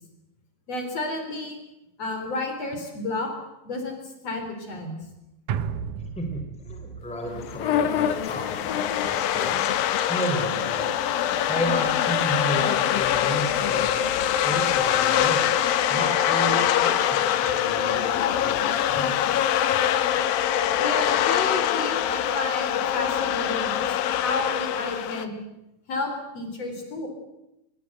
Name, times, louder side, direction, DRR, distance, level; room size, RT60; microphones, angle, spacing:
voice 1, 0.7-1.6 2.0-3.3 3.6-5.0 18.9-19.0 20.7-23.8 24.2-25.4 25.9-27.1, left 2 dB, 45° left, 5 dB, 4.8 m, -31 dB
sound 1, 5.5-9.9 10.3-10.4, right 7 dB, 65° right, 2.2 m, -36 dB
voice 2, 6.1-9.7 10.1-10.9 11.2-14.1 14.4-15.5 15.9-19.6, equal, ahead, 4 dB, 3.4 m, -33 dB
sound 2, 7.3-25.3, left 10 dB, 85° left, 2.9 m, -24 dB
25.0 x 21.0 x 8.0 m, 0.90 s
omnidirectional pair, 4.0 m